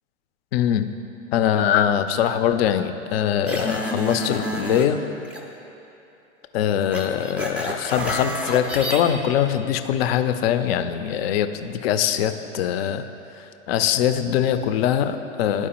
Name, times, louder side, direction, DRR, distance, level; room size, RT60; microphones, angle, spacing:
voice 1, 0.5-0.9 1.3-5.0 6.5-13.1 13.4-15.7, left 9 dB, 50° left, 9 dB, 0.5 m, -22 dB
sound 1, 3.5-4.9 5.2-5.4 6.9-9.0, equal, 5° right, 0.4 m, -28 dB
11.5 x 4.7 x 2.9 m, 2.9 s
hypercardioid pair, 105°, 38 cm